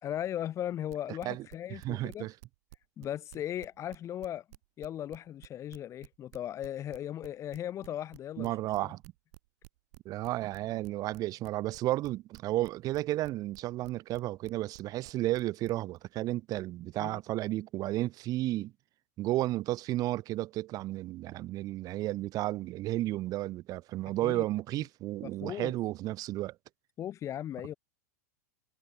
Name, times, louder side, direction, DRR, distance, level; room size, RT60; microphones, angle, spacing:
voice 1, 0.0-2.3 3.0-4.4 4.8-8.5 8.8-8.9 17.0-17.2 24.2-24.4 25.2-25.7 27.0-27.7, left 11 dB, 35° left, 2.1 m, -37 dB
sound 1, 0.9-3.1 3.3-16.0, right 20 dB, 65° right, 5.3 m, -52 dB
voice 2, 1.7-2.3 8.4-9.0 10.0-18.7 19.2-26.5, right 16 dB, 40° right, 4.9 m, -33 dB
hypercardioid pair, 110°, 9 cm